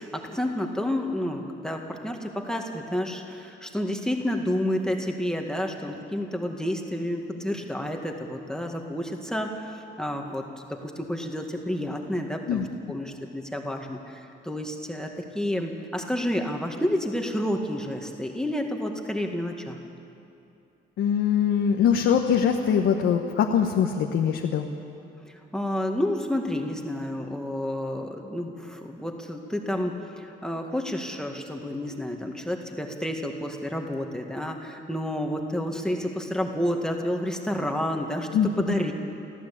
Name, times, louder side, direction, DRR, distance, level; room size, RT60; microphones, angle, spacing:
voice 1, 0.0-19.8 25.3-38.9, left 1 dB, 5° left, 2 dB, 2.0 m, -30 dB
voice 2, 21.0-24.7 38.3-38.5, left 8 dB, 75° left, 2 dB, 1.3 m, -22 dB
23.5 x 15.0 x 8.6 m, 2.7 s
cardioid pair, 90°, 20 cm